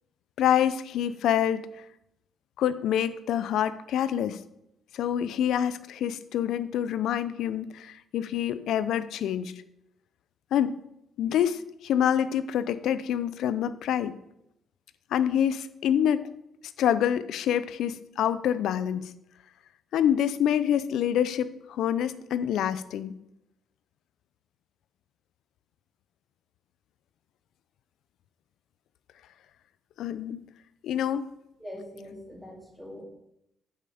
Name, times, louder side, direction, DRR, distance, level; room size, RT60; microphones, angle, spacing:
voice 1, 0.4-1.7 2.6-4.4 4.9-9.5 10.5-10.8 11.2-14.2 15.1-16.3 16.8-19.1 19.9-23.1 30.0-30.5 30.8-31.3, left 10 dB, 80° left, 14 dB, 0.5 m, -26 dB
voice 2, 31.6-33.0, left 1 dB, 5° left, -2 dB, 2.5 m, -42 dB
8.0 x 5.7 x 5.0 m, 0.82 s
cardioid pair, 90°, 0 cm